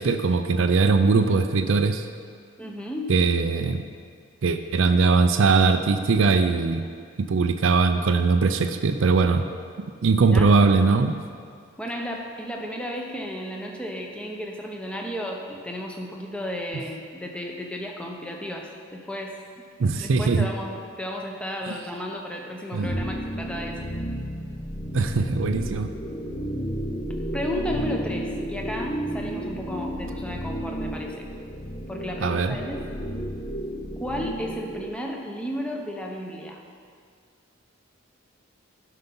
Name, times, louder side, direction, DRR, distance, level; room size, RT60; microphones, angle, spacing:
voice 1, 0.0-2.1 3.1-3.8 4.4-6.8 7.2-9.4 10.0-11.1 19.8-20.5 21.7-21.8 22.7-22.9 24.9-25.9 32.2-32.6, right 4 dB, 75° right, 7 dB, 0.5 m, -20 dB
voice 2, 2.6-3.1 10.1-10.6 11.8-19.3 20.0-23.8 27.3-31.3 31.9-32.8 34.0-36.6, equal, 5° left, 0 dB, 0.9 m, -33 dB
sound 1, 22.8-34.9, equal, 25° left, 0.6 m, -32 dB
11.5 x 5.6 x 5.6 m, 2.1 s
head